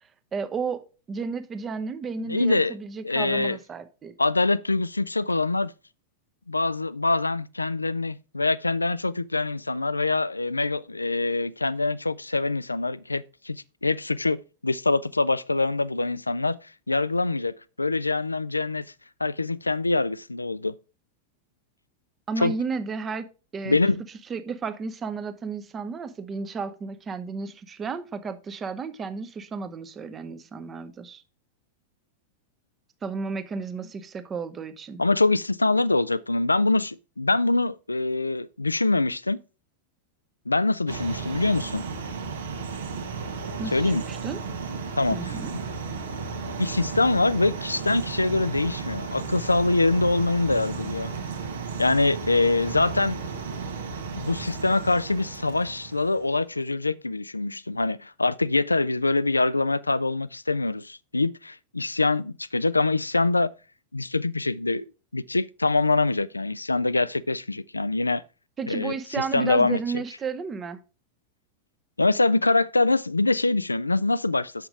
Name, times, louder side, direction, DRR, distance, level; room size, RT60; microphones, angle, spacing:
voice 1, 0.3-4.1 22.3-23.3 23.5-23.8 24.3-31.2 33.0-35.0 43.6-44.4 45.1-45.5 68.6-70.8, right 5 dB, 20° right, 0.8 m, -33 dB
voice 2, 2.3-2.7 3.0-3.6 4.2-5.7 6.5-13.6 13.8-16.6 16.9-18.8 19.2-20.8 22.4-22.5 23.7-24.0 35.0-39.4 40.5-41.8 43.7-44.0 45.0-45.3 46.6-51.1 51.8-53.2 54.2-63.5 63.9-64.8 65.1-68.2 68.7-69.8 72.0-74.7, left 3 dB, 80° left, 0.3 m, -24 dB
sound 1, 40.9-56.4, right 5 dB, 65° right, 1.1 m, -34 dB
6.9 x 5.8 x 4.9 m
figure-of-eight pair, 90°, 0 cm